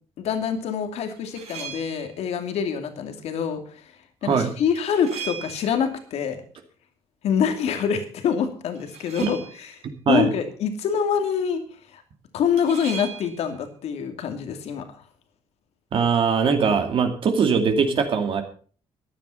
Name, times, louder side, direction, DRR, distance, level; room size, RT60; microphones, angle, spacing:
voice 1, 0.2-3.8 4.2-6.4 7.2-9.7 10.1-11.6 11.9-12.0 12.3-14.9, left 7 dB, 75° left, 6 dB, 2.5 m, -25 dB
sound 1, 1.2-2.2 4.7-5.9 8.7-9.7 12.6-13.5, right 8 dB, 80° right, 4.0 m, -38 dB
voice 2, 4.2-4.5 9.2-9.3 10.1-10.3 15.9-18.4, right 6 dB, 55° right, 5 dB, 2.5 m, -21 dB
14.5 x 11.0 x 5.7 m, 0.43 s
cardioid pair, 150°, 11 cm